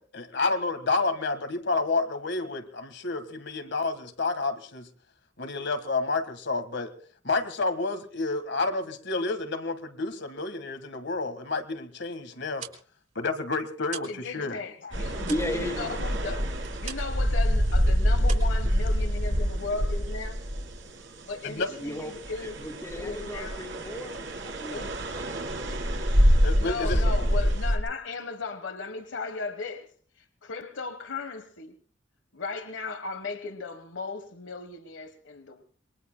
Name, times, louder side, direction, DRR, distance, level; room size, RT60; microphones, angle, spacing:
voice 1, 0.0-4.9 5.4-6.9 7.2-12.6 13.1-14.6 14.8-14.9 21.4-21.7 23.0-23.1 26.4-27.0, left 3 dB, 65° left, 1.6 m, -30 dB
sound 1, 12.4-14.3 14.6-17.3 17.6-17.9 18.2-19.3, right 7 dB, 45° right, 4.5 m, -43 dB
voice 2, 14.1-16.5 16.8-20.4 21.2-22.6 22.9-23.6 24.7-25.0 26.6-29.9 30.2-31.7 32.3-35.6, left 4 dB, 85° left, 1.3 m, -36 dB
sound 2, 14.9-21.1 21.6-27.8, equal, 75° right, 3.6 m, -26 dB
voice 3, 15.2-15.9 21.7-24.8, left 1 dB, 15° left, 2.1 m, -35 dB
28.0 x 22.0 x 2.2 m
head